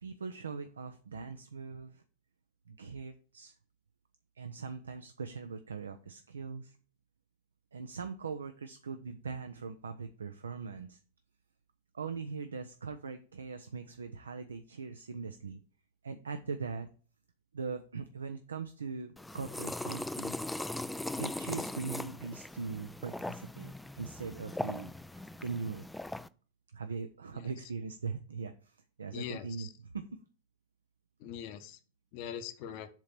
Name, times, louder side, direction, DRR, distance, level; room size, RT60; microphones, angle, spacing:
voice 1, 0.0-2.0 2.7-3.5 4.4-6.8 7.7-11.0 11.9-15.6 16.0-16.9 17.5-20.5 21.2-24.9 25.4-25.9 26.7-29.7 29.9-30.1, right 5 dB, 70° right, 9 dB, 0.5 m, -41 dB
sound 1, 19.2-26.3, left 1 dB, 5° left, 0.3 m, -39 dB
voice 2, 29.1-29.7 31.2-31.8 32.1-32.9, left 9 dB, 45° left, 9 dB, 1.0 m, -42 dB
7.3 x 3.8 x 5.8 m, 0.39 s
figure-of-eight pair, 90°, 0 cm